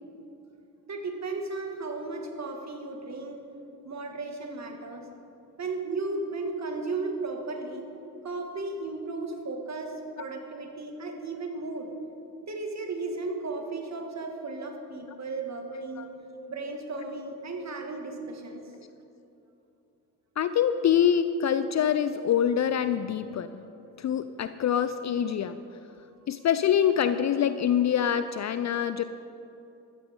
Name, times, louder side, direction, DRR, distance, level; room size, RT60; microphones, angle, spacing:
voice 1, 0.9-3.5 3.8-5.1 5.6-7.9 8.2-11.9 12.4-16.1 16.5-18.7, right 3 dB, 35° right, 3 dB, 2.2 m, -35 dB
voice 2, 15.7-16.1 16.3-16.5 20.4-23.6 24.0-25.6 26.3-29.0, left 9 dB, 35° left, 11 dB, 0.6 m, -25 dB
14.0 x 14.0 x 3.9 m, 2.8 s
hypercardioid pair, 55°, 47 cm